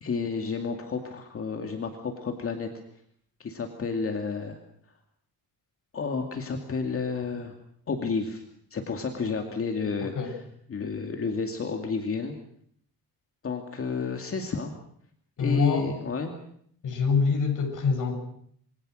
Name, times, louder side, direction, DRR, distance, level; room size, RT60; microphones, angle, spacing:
voice 1, 0.0-2.7 3.4-4.6 5.9-7.6 7.9-8.4 8.7-10.4 10.7-12.4 13.4-14.7 15.4-16.4, left 4 dB, 35° left, 4 dB, 2.4 m, -31 dB
voice 2, 15.4-15.9 16.8-18.1, left 5 dB, 55° left, 3 dB, 7.5 m, -25 dB
26.5 x 23.5 x 6.5 m, 0.66 s
cardioid pair, 165°, 38 cm